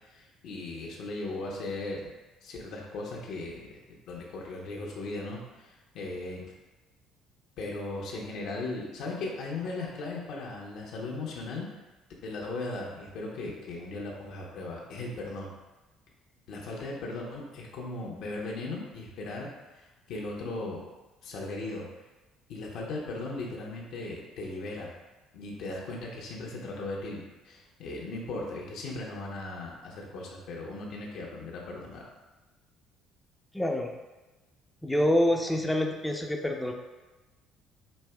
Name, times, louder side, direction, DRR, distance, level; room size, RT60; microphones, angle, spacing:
voice 1, 0.0-2.1 2.4-3.7 4.1-6.5 7.6-11.7 12.2-15.5 16.5-19.5 19.7-20.8 21.2-21.9 22.5-24.9 25.3-32.1, left 2 dB, 65° left, -2 dB, 0.8 m, -37 dB
voice 2, 33.5-33.9 34.8-36.7, left 1 dB, 5° left, 2 dB, 0.6 m, -26 dB
5.2 x 2.7 x 2.3 m, 1.1 s
hypercardioid pair, 60°, 0 cm